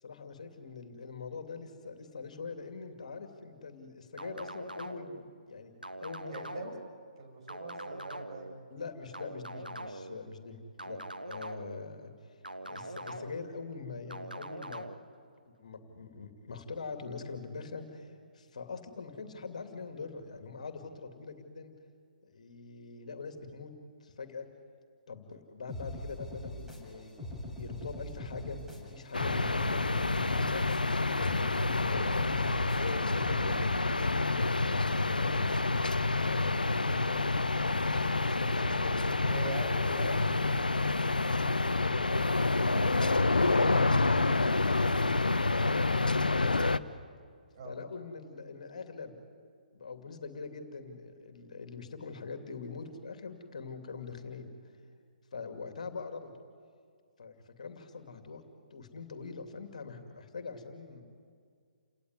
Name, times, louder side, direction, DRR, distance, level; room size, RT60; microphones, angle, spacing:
voice 1, 0.0-5.7 6.0-6.7 8.7-12.4 12.6-14.9 15.4-21.7 22.2-23.7 24.0-24.5 25.1-35.8 36.1-39.0 39.9-46.6 46.9-47.0 47.6-49.1 49.7-54.8 55.3-56.3 57.2-58.4 58.7-61.0, left 4 dB, 55° left, 6 dB, 2.7 m, -43 dB
sound 1, 4.2-5.2 5.8-6.9 7.5-8.5 9.1-10.2 10.8-11.8 12.4-13.5 14.1-14.9, right 1 dB, 85° right, 1.5 m, -43 dB
voice 2, 6.3-6.7 7.2-8.5 38.2-38.8 39.2-40.2 47.5-47.7, right 4 dB, 40° right, 3 dB, 5.8 m, -43 dB
sound 2, 25.7-33.7, left 1 dB, 5° right, 4.4 m, -42 dB
sound 3, 29.1-46.8, left 3 dB, 75° left, 0.9 m, -28 dB
29.5 x 18.5 x 9.6 m, 2.1 s
figure-of-eight pair, 135°, 5 cm